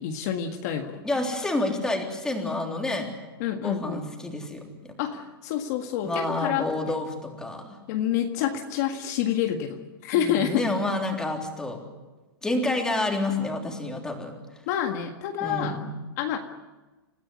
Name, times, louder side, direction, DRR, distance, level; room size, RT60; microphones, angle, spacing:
voice 1, 0.0-1.0 3.4-4.0 5.0-6.7 7.9-10.6 14.7-15.8 16.2-16.4, left 10 dB, 45° left, 4 dB, 1.8 m, -28 dB
voice 2, 1.0-3.1 3.6-4.9 6.0-7.8 10.2-11.8 12.4-14.3 15.4-15.9, left 2 dB, 5° left, 1 dB, 3.5 m, -29 dB
29.0 x 15.0 x 9.6 m, 1.2 s
hypercardioid pair, 155°, 13 cm